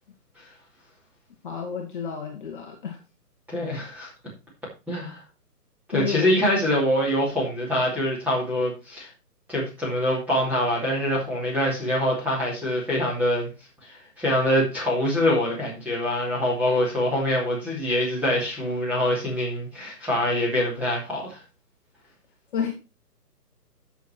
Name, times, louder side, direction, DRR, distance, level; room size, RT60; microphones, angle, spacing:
voice 1, 1.4-3.0 5.9-6.3 22.5-22.7, left 7 dB, 30° left, 1 dB, 1.7 m, -30 dB
voice 2, 3.5-4.1 4.9-5.2 5.9-9.1 9.5-13.5 13.9-21.4, left 1 dB, 5° right, -5 dB, 2.7 m, -24 dB
9.1 x 7.1 x 4.4 m, 0.30 s
hypercardioid pair, 160°, 48 cm